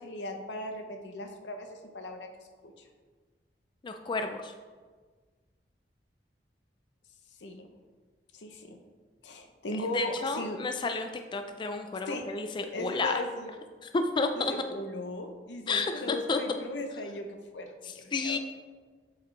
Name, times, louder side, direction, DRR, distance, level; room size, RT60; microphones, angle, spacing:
voice 1, 0.0-2.3 2.6-2.7 7.4-7.7 8.3-8.8 9.2-10.6 11.9-12.2 12.7-13.5 14.3-17.3 17.5-18.4, left 2 dB, 90° left, 5 dB, 0.8 m, -37 dB
voice 2, 3.8-4.5 9.9-13.2 13.9-14.5 15.7-16.4 18.1-18.4, left 3 dB, 25° left, 6 dB, 0.3 m, -31 dB
8.1 x 4.8 x 3.2 m, 1.5 s
head